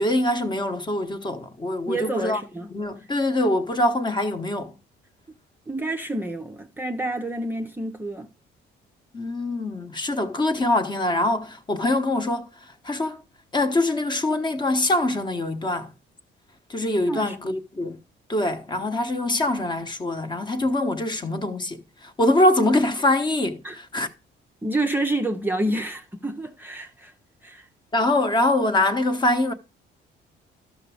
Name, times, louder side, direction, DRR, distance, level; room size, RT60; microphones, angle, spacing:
voice 1, 0.0-2.4 2.7-4.7 9.1-12.5 12.8-13.2 13.5-15.9 16.7-18.0 18.3-24.1 27.9-29.5, left 1 dB, 25° left, 1.0 m, -24 dB
voice 2, 1.9-2.7 5.7-8.3 17.1-17.4 23.6-23.8 24.6-27.1 27.4-27.7, right 1 dB, 10° right, 0.6 m, -28 dB
13.0 x 6.1 x 3.4 m
cardioid pair, 140°, 20 cm